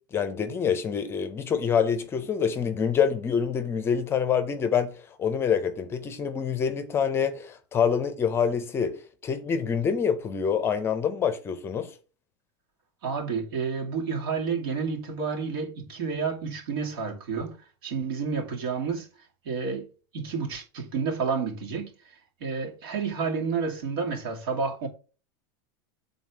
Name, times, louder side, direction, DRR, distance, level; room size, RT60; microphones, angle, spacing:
voice 1, 0.1-9.0 9.2-11.9, left 7 dB, 20° left, 0.6 m, -26 dB
voice 2, 13.0-17.6 17.8-19.1 19.4-19.9 20.1-21.9 22.4-24.9, right 5 dB, 75° right, 2.5 m, -30 dB
7.7 x 4.0 x 5.9 m
supercardioid pair, 160°, 13 cm